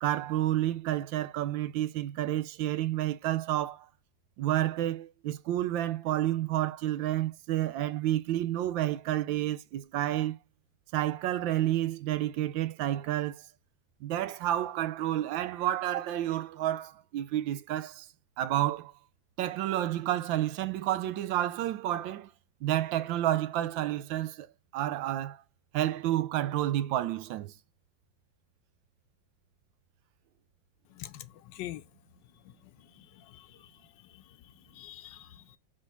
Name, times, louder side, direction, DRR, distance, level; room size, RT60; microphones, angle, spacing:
voice 1, 0.0-3.9 4.4-10.4 10.9-13.5 14.0-18.1 18.4-18.9 19.4-22.3 22.6-24.5 24.7-25.4 25.7-27.5, right 13 dB, 80° right, 1.3 m, -30 dB
voice 2, 30.9-31.8 33.0-33.7 34.1-34.2 34.7-35.6, left 14 dB, 75° left, 1.2 m, -45 dB
5.1 x 4.4 x 5.9 m
omnidirectional pair, 2.1 m